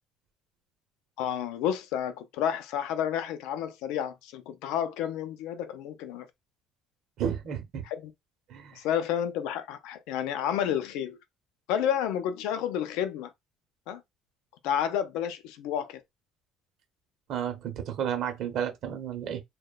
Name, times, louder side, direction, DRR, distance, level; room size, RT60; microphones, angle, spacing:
voice 1, 1.2-6.3 7.9-8.1 8.7-11.2 11.7-13.3 13.9-14.0 14.6-16.0, left 9 dB, 85° left, 0.4 m, -30 dB
voice 2, 7.2-7.8 8.5-8.8 17.3-19.4, right 9 dB, 55° right, 0.7 m, -32 dB
2.9 x 2.1 x 2.2 m
cardioid pair, 155°, 0 cm